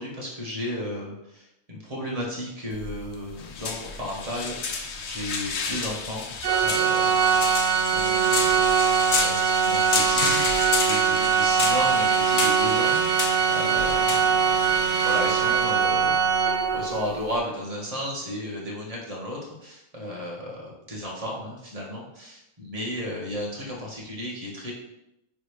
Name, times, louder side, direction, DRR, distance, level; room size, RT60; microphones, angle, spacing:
voice 1, 0.0-8.6 8.9-24.7, equal, 25° right, -4 dB, 1.6 m, -34 dB
sound 1, 2.7-17.4, left 5 dB, 60° left, 0.9 m, -31 dB
Organ, 6.4-17.1, right 7 dB, 80° right, 0.4 m, -22 dB
9.0 x 3.5 x 3.2 m, 0.86 s
omnidirectional pair, 1.5 m